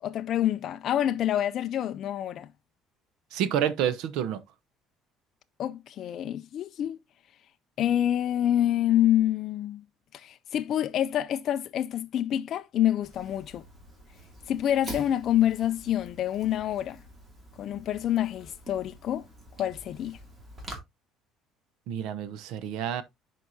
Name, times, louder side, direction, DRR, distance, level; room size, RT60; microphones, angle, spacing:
voice 1, 0.0-2.5 5.6-7.0 7.8-9.8 10.1-13.6 14.5-17.0 17.6-19.3 19.6-20.2, left 11 dB, 45° left, 0.3 m, -27 dB
voice 2, 3.3-4.4 21.9-23.0, right 9 dB, 75° right, 0.8 m, -29 dB
Fire, 13.0-20.8, right 1 dB, 20° right, 2.3 m, -46 dB
11.0 x 4.5 x 2.7 m
cardioid pair, 150°, 0 cm